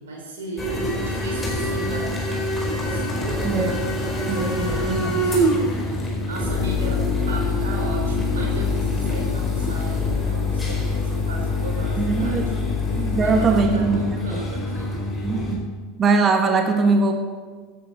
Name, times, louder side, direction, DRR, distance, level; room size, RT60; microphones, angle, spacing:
voice 1, 0.0-3.8 4.4-5.7 6.0-12.5 13.2-15.0, right 2 dB, 70° right, -1 dB, 4.3 m, -36 dB
sound 1, 0.6-15.6, left 2 dB, 15° left, 4.4 m, -24 dB
voice 2, 4.3-5.4 12.0-12.5 12.9-14.4 15.2-15.6 16.0-17.1, right 4 dB, 25° right, 5 dB, 1.4 m, -21 dB
16.0 x 10.5 x 4.4 m, 1.5 s
figure-of-eight pair, 80°, 0 cm